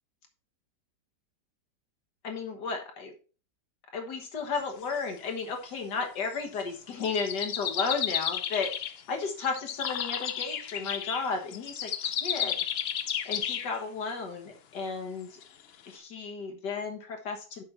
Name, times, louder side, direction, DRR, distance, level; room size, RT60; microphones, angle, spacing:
voice 1, 2.2-3.1 3.9-12.6 13.2-15.4 15.9-17.6, left 4 dB, 75° left, 5 dB, 2.0 m, -34 dB
sound 1, 4.6-5.2 6.2-6.5 7.0-9.0 9.4-13.7 15.4-15.5 15.9-16.0, left 9 dB, 90° left, 0.5 m, -32 dB
7.5 x 5.8 x 4.2 m, 0.37 s
omnidirectional pair, 1.9 m